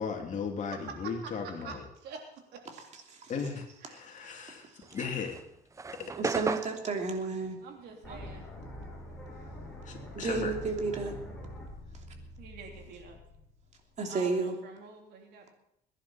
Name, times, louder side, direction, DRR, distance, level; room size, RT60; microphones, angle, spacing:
voice 1, 0.0-1.8 3.3-5.4 5.9-6.1 9.8-10.5, left 5 dB, 45° left, 2 dB, 3.0 m, -36 dB
voice 2, 3.8-4.5 7.6-8.5 12.4-13.2 14.1-15.5, right 5 dB, 75° right, 2 dB, 3.5 m, -47 dB
sound 1, 4.8-9.5 9.8-11.8, right 4 dB, 20° right, 0.6 m, -38 dB
voice 3, 6.0-7.6 8.1-8.2 10.1-11.2 14.0-14.5, right 4 dB, 45° right, 3 dB, 3.0 m, -32 dB
sound 2, 8.0-14.0, left 1 dB, 5° left, 5.6 m, -45 dB
22.0 x 10.5 x 4.4 m, 0.77 s
cardioid pair, 110°, 17 cm